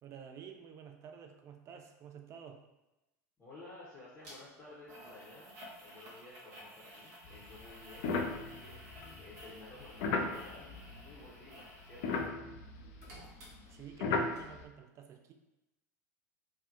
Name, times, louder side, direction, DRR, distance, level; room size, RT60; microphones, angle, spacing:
voice 1, 0.0-2.6 13.7-15.3, right 8 dB, 30° right, 4 dB, 0.3 m, -51 dB
voice 2, 3.4-12.2, left 2 dB, 20° left, -8 dB, 0.7 m, -54 dB
sound 1, 4.2-4.4 4.9-12.3 12.6-14.1 14.4-14.5, equal, 60° right, 0.8 m, -54 dB
sound 2, 7.2-11.5 11.7-14.6, left 4 dB, 55° left, 0.3 m, -37 dB
2.8 x 2.1 x 2.4 m, 0.98 s
figure-of-eight pair, 80°, 9 cm